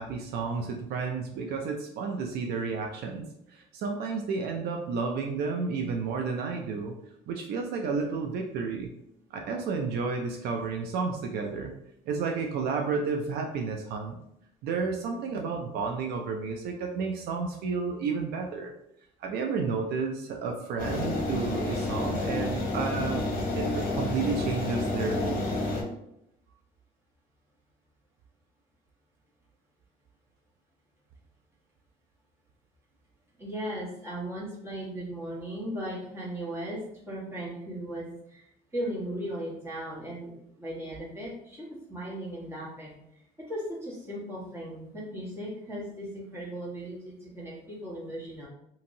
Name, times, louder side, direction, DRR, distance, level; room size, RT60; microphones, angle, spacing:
voice 1, 0.0-6.9 7.3-8.9 9.3-11.7 12.1-14.2 14.6-18.7 19.2-23.2 23.5-25.6, right 4 dB, 70° right, 2 dB, 0.4 m, -31 dB
sound 1, 20.8-25.8, left 2 dB, 55° left, 0.8 m, -30 dB
voice 2, 33.4-42.9 43.5-48.5, right 1 dB, 15° right, -6 dB, 1.3 m, -37 dB
2.8 x 2.6 x 2.6 m, 0.79 s
cardioid pair, 110°, 17 cm